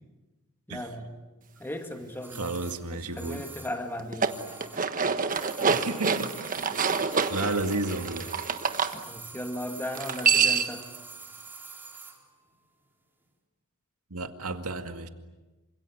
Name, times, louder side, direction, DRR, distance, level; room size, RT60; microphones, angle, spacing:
voice 1, 0.7-1.1 1.6-2.6 2.9-4.4 8.9-10.9, left 1 dB, 10° left, 5 dB, 2.1 m, -36 dB
sound 1, 2.2-5.0 5.2-12.2 12.5-12.6, right 4 dB, 10° right, 3.8 m, -46 dB
voice 2, 2.3-3.4 5.7-6.4 7.3-8.3 14.1-15.1, right 2 dB, 85° right, 7 dB, 2.1 m, -32 dB
sound 2, 4.0-8.9 9.9-10.8, right 5 dB, 40° right, 1.3 m, -27 dB
27.5 x 26.0 x 7.9 m, 1.1 s
head